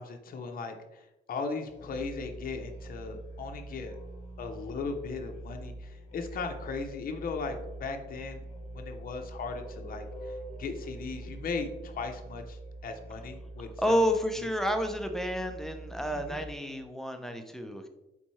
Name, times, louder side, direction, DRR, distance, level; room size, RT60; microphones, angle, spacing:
voice 1, 0.0-4.0 4.4-14.0 14.4-14.5 16.1-16.4, left 4 dB, 45° left, 4 dB, 0.6 m, -38 dB
Musical instrument, 1.7-16.7, right 1 dB, 30° left, 0.9 m, -44 dB
voice 2, 13.8-17.9, equal, ahead, 5 dB, 0.5 m, -30 dB
4.1 x 3.6 x 3.1 m, 1.0 s
cardioid pair, 90°, 20 cm